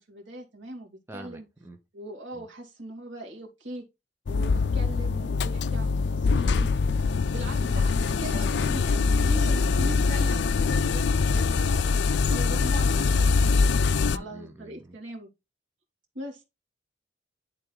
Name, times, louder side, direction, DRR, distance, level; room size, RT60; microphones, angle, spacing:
voice 1, 0.0-1.4 1.9-3.8 4.3-6.7 7.3-12.0 12.3-13.6 14.1-15.3 16.1-16.4, right 1 dB, 85° right, 2.6 m, -40 dB
voice 2, 1.1-1.8 2.3-2.5 12.7-13.4 13.7-15.0, right 1 dB, 10° right, 0.9 m, -44 dB
sound 1, 4.3-14.2, left 4 dB, 65° left, 0.4 m, -23 dB
11.0 x 3.7 x 3.9 m
head